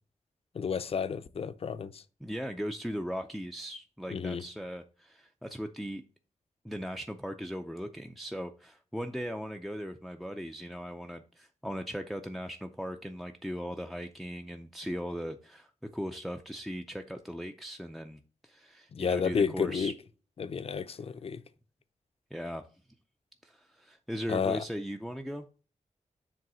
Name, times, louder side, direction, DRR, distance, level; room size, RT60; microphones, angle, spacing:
voice 1, 0.5-2.0 4.1-4.4 18.9-19.9 20.4-21.4 24.3-24.6, left 6 dB, 50° left, 0.6 m, -31 dB
voice 2, 2.2-6.0 6.6-19.9 22.3-22.6 23.4-25.5, equal, ahead, 0.4 m, -38 dB
7.6 x 3.1 x 6.1 m
wide cardioid pair, 145°, 13 cm